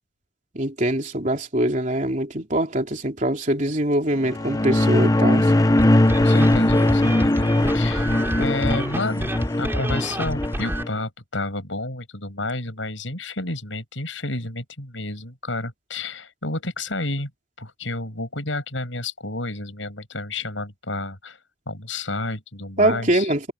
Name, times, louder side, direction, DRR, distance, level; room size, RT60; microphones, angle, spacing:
voice 1, 0.5-5.5 22.8-23.5, right 1 dB, 40° right, 3.4 m, -23 dB
sound 1, 4.2-10.9, left 1 dB, 20° left, 0.7 m, -20 dB
sound 2, 5.8-10.8, right 1 dB, 10° right, 4.0 m, -29 dB
voice 2, 6.2-17.3 17.6-21.4 21.7-23.3, left 2 dB, 85° left, 7.2 m, -30 dB
head